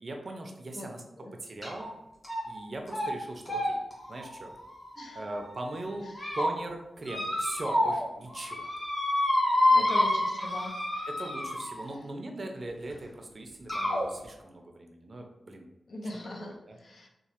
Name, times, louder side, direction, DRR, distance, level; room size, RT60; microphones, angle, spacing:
voice 1, 0.0-1.0 1.3-1.9 2.5-3.8 4.1-4.5 5.1-6.1 6.3-8.7 9.7-9.9 11.1-15.7 16.4-16.8, right 2 dB, 50° right, 3 dB, 0.4 m, -40 dB
sound 1, 1.6-1.9 2.2-2.6 2.9-3.1 3.5-5.4 5.9-6.5 7.1-8.0 8.3-11.9 12.9-13.0 13.7-14.0, left 1 dB, 25° left, 1.1 m, -28 dB
voice 2, 9.7-10.7 15.9-17.1, left 1 dB, 65° left, 1 dB, 0.5 m, -40 dB
3.0 x 2.1 x 2.9 m, 0.95 s
cardioid pair, 70°, 0 cm